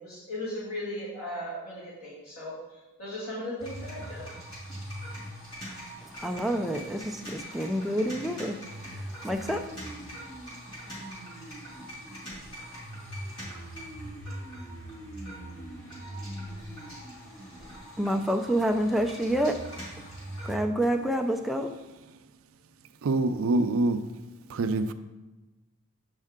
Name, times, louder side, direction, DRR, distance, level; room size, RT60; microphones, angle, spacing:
voice 1, 0.0-4.3, left 1 dB, 85° left, 2.5 m, -37 dB
sound 1, 3.6-20.6, equal, 25° left, 2.6 m, -41 dB
voice 2, 6.2-8.6 8.9-9.6 18.0-19.6 20.4-21.7, equal, ahead, 0.3 m, -28 dB
voice 3, 23.0-24.1 24.5-24.9, right 2 dB, 80° right, 0.4 m, -25 dB
7.4 x 5.4 x 3.7 m
head